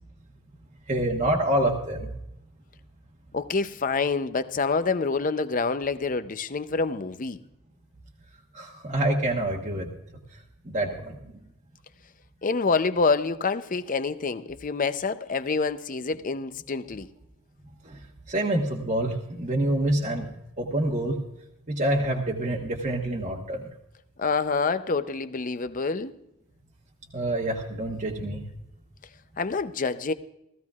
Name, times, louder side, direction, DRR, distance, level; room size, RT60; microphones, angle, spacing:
voice 1, 0.9-2.1 8.5-9.9 10.7-11.1 17.8-18.0 18.3-20.3 20.6-21.2 21.7-23.7 27.1-28.4, right 1 dB, 35° right, 1.1 m, -26 dB
voice 2, 3.3-7.4 12.4-17.1 24.2-26.1 29.4-30.1, left 4 dB, 35° left, 0.5 m, -27 dB
17.0 x 15.0 x 2.4 m
head